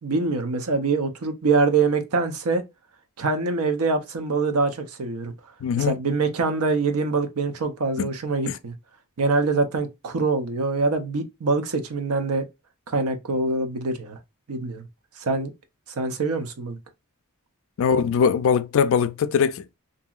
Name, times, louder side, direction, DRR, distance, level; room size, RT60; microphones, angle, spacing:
voice 1, 0.0-2.6 3.2-5.3 5.8-8.7 9.2-12.4 12.9-14.2 14.5-14.9 15.2-15.5 16.0-16.8, right 3 dB, 85° right, 0.6 m, -24 dB
voice 2, 5.6-5.9 8.0-8.1 8.5-8.6 17.8-19.8, left 6 dB, 60° left, 0.3 m, -21 dB
2.8 x 2.6 x 2.3 m
head